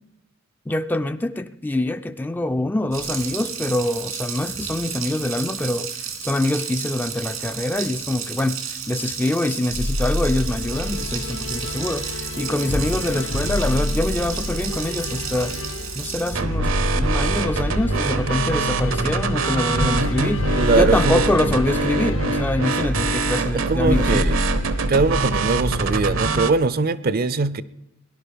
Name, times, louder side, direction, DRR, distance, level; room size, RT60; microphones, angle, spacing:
voice 1, 0.7-15.6 15.9-24.3, left 1 dB, 10° left, 0.4 m, -25 dB
Water tap faucet, 2.9-16.3, right 8 dB, 90° right, 2.6 m, -32 dB
sound 1, 9.7-26.5, left 1 dB, 70° left, 1.0 m, -28 dB
sound 2, 16.3-26.5, right 3 dB, 75° right, 0.9 m, -24 dB
voice 2, 19.8-21.6 23.5-24.4 24.9-27.6, right 3 dB, 45° right, 0.5 m, -22 dB
18.5 x 10.5 x 5.2 m
head